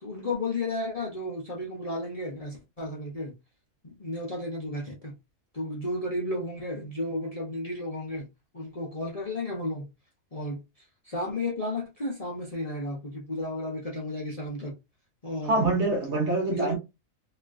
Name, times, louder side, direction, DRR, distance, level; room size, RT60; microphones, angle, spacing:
voice 1, 0.0-3.3 3.8-5.1 5.5-8.2 8.5-9.9 10.3-10.6 11.1-14.7 15.2-15.7 16.5-16.8, left 1 dB, 30° left, 0.9 m, -33 dB
voice 2, 15.4-16.8, right 2 dB, 55° right, 1.5 m, -25 dB
3.1 x 2.9 x 2.5 m
omnidirectional pair, 1.4 m